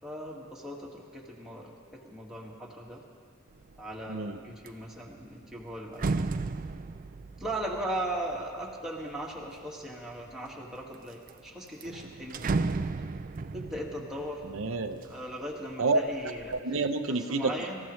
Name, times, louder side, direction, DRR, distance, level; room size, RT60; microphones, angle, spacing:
voice 1, 0.0-3.0 3.8-6.3 7.4-12.9 13.5-14.4 15.1-16.5 17.1-17.8, right 1 dB, ahead, -4 dB, 1.8 m, -38 dB
sound 1, 3.6-3.9 4.3-9.7 10.3-10.9 11.3-11.4 11.7-15.6 16.0-16.6, right 3 dB, 40° right, 0.4 m, -35 dB
voice 2, 4.1-4.4 14.4-15.0 15.8-16.0 16.5-17.5, right 3 dB, 85° right, 7 dB, 0.7 m, -29 dB
25.5 x 15.0 x 3.2 m, 2.1 s
head